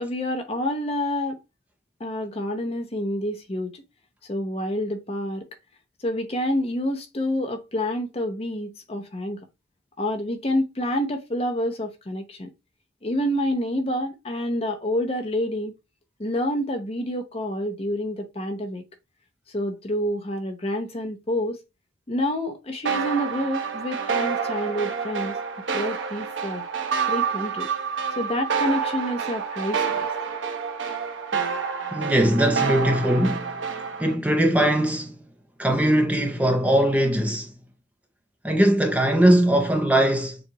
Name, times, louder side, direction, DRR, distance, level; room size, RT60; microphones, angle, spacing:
voice 1, 0.0-1.4 2.0-3.8 4.3-5.4 6.0-9.4 10.0-12.5 13.0-15.7 16.2-18.8 19.5-21.6 22.1-25.4 25.7-26.6 27.1-27.7 28.2-30.1, left 1 dB, 30° left, 0.8 m, -28 dB
sound 1, 22.9-34.1, right 6 dB, 80° right, 0.9 m, -28 dB
voice 2, 31.9-33.5 34.0-35.1 35.6-37.5 38.4-40.4, right 1 dB, 10° right, 0.6 m, -20 dB
7.0 x 2.5 x 3.0 m
head